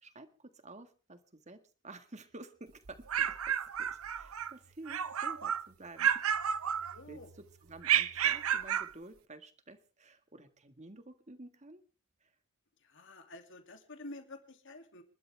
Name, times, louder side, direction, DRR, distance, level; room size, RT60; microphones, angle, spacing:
voice 1, 0.0-6.2 7.1-7.2 7.6-11.8 12.2-12.3, right 2 dB, 30° right, 8 dB, 1.8 m, -51 dB
sound 1, 2.9-4.5 4.9-5.7 6.0-7.2 7.8-8.9, right 9 dB, 75° right, 0.8 m, -31 dB
voice 2, 6.9-7.3 12.8-15.0, left 2 dB, 60° left, 6 dB, 2.7 m, -49 dB
29.0 x 12.5 x 3.5 m, 0.38 s
head